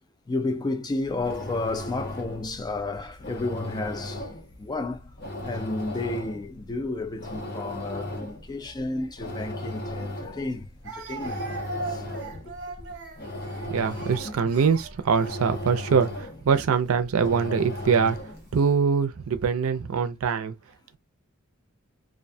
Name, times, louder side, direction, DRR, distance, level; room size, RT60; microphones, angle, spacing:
voice 1, 0.3-4.3 4.6-5.1 5.4-11.5 11.9-12.0 12.4-12.5, left 2 dB, 20° left, 0.3 m, -32 dB
sound 1, 1.0-18.6, left 1 dB, 50° left, 0.8 m, -37 dB
Speech, 9.7-9.8 10.8-15.7 16.5-16.8 17.7-18.3, right 3 dB, 55° right, 0.9 m, -39 dB
voice 2, 13.6-18.2 18.5-20.5, right 6 dB, 80° right, 0.5 m, -23 dB
2.5 x 2.2 x 2.6 m
head